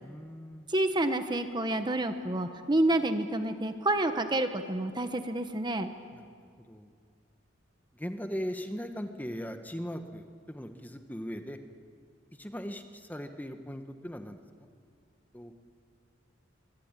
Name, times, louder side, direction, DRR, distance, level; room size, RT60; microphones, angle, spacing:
voice 1, 0.0-0.7 6.1-6.2 6.7-6.9 7.9-11.6 12.4-14.7 15.3-15.5, equal, 10° left, 7 dB, 1.3 m, -39 dB
voice 2, 0.7-5.9, right 1 dB, 25° right, 8 dB, 1.1 m, -28 dB
24.0 x 23.5 x 9.0 m, 2.2 s
head